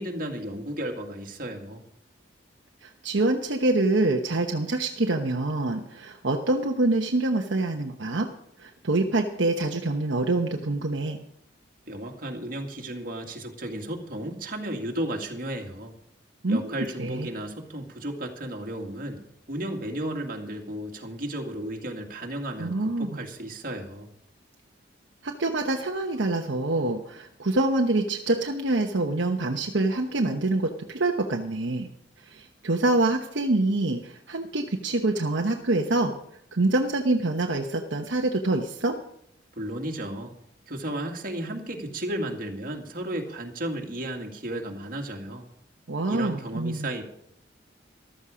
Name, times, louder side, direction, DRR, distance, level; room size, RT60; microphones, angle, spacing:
voice 1, 0.0-1.8 11.9-15.9 16.5-19.2 19.5-24.1 39.6-40.3 40.7-45.5 46.1-47.0, right 1 dB, 50° right, 2 dB, 2.2 m, -34 dB
voice 2, 2.8-8.3 8.6-11.2 16.4-16.7 17.0-17.3 22.6-23.2 25.2-31.9 32.2-36.1 36.5-38.9 45.9-46.9, right 2 dB, 70° right, 2 dB, 1.0 m, -26 dB
14.0 x 12.5 x 5.0 m, 0.72 s
head